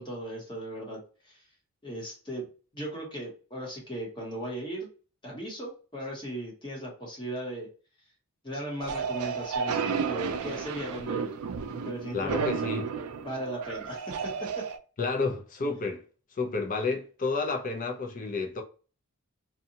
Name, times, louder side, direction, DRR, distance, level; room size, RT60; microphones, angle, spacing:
voice 1, 0.0-1.4 1.8-2.5 2.7-4.9 5.2-7.7 8.4-11.3 11.7-12.6 13.2-14.3 14.6-14.7, right 1 dB, 20° left, 1.0 m, -37 dB
sound 1, 8.8-14.8, right 6 dB, 75° right, 0.4 m, -32 dB
voice 2, 12.1-12.8 15.0-16.0 16.3-18.6, left 4 dB, 35° left, 0.5 m, -30 dB
2.7 x 2.2 x 2.8 m
head